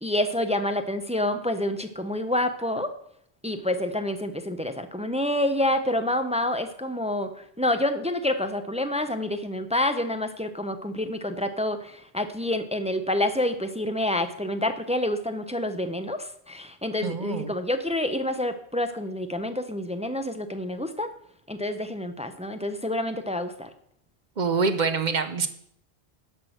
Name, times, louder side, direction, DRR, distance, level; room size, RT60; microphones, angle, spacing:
voice 1, 0.0-2.9 3.4-7.3 7.6-21.1 21.5-23.7, left 1 dB, 10° right, 9 dB, 0.5 m, -28 dB
voice 2, 17.0-17.5 24.4-25.5, right 4 dB, 50° right, 10 dB, 0.8 m, -25 dB
11.0 x 6.1 x 6.4 m, 0.70 s
omnidirectional pair, 1.1 m